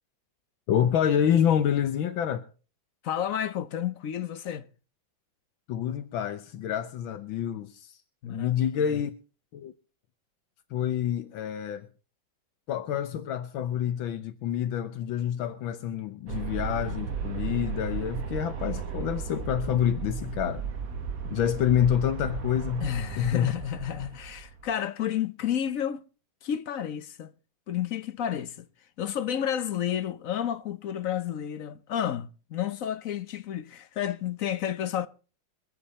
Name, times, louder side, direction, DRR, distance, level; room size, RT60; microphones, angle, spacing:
voice 1, 0.7-2.4 5.7-8.0 8.3-9.1 9.5-9.7 10.7-11.9 12.7-20.6 21.3-22.9 23.2-23.5, left 9 dB, 85° left, 1.7 m, -27 dB
voice 2, 3.0-4.7 8.2-9.0 22.8-26.0 26.4-27.3 27.7-28.7 29.0-35.1, left 10 dB, 60° left, 0.9 m, -31 dB
Aircraft, 16.3-24.7, right 6 dB, 50° right, 1.6 m, -35 dB
23.5 x 8.8 x 4.2 m
omnidirectional pair, 2.1 m